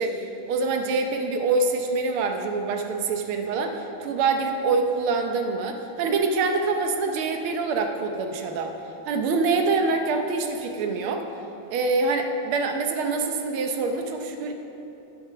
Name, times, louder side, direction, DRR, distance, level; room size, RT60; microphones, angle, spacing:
voice 1, 0.0-8.7 9.1-11.3 11.7-14.5, right 3 dB, 85° right, 5 dB, 1.7 m, -25 dB
9.7 x 7.7 x 5.9 m, 3.0 s
omnidirectional pair, 2.3 m